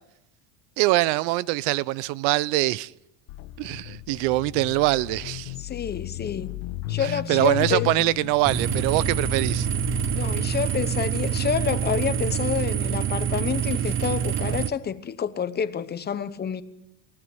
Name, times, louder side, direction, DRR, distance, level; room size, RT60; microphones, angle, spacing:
voice 1, 0.8-2.9 3.6-5.5 7.0-9.7, right 19 dB, 70° right, 0.8 m, -23 dB
sound 1, 3.3-12.4, left 15 dB, 70° left, 1.6 m, -35 dB
voice 2, 5.6-6.5 6.9-7.9 10.1-16.6, left 7 dB, 20° left, 1.0 m, -28 dB
sound 2, 8.4-14.7, right 9 dB, 25° right, 0.8 m, -26 dB
23.5 x 17.5 x 7.9 m
cardioid pair, 140°, 48 cm